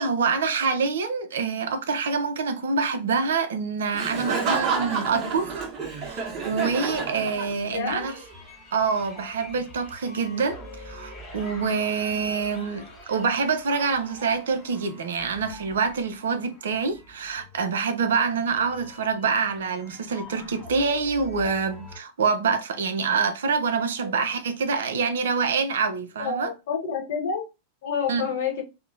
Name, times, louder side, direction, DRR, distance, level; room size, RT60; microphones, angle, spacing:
voice 1, 0.0-5.6 6.0-8.2 8.7-26.5 28.1-28.3, right 5 dB, 60° right, 0.4 m, -26 dB
Laughter, 3.9-7.9, right 4 dB, 30° right, 0.9 m, -29 dB
voice 2, 7.7-8.1 24.0-24.2 26.2-27.5 27.8-28.6, left 6 dB, 55° left, 0.9 m, -28 dB
sound 1, 8.0-22.0, left 1 dB, 20° left, 1.3 m, -45 dB
2.6 x 2.0 x 2.4 m
figure-of-eight pair, 90°, 0 cm